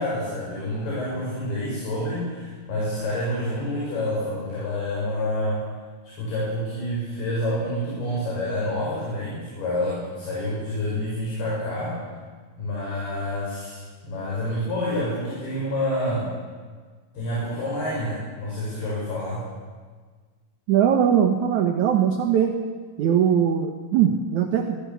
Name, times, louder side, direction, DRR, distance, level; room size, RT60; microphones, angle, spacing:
voice 1, 0.0-5.6 6.0-12.0 12.6-16.3 17.1-19.4, left 1 dB, 60° left, -6 dB, 8.4 m, -28 dB
voice 2, 20.7-22.5 23.0-24.8, right 8 dB, 65° right, 4 dB, 1.9 m, -20 dB
24.0 x 21.0 x 7.2 m, 1.5 s
omnidirectional pair, 5.2 m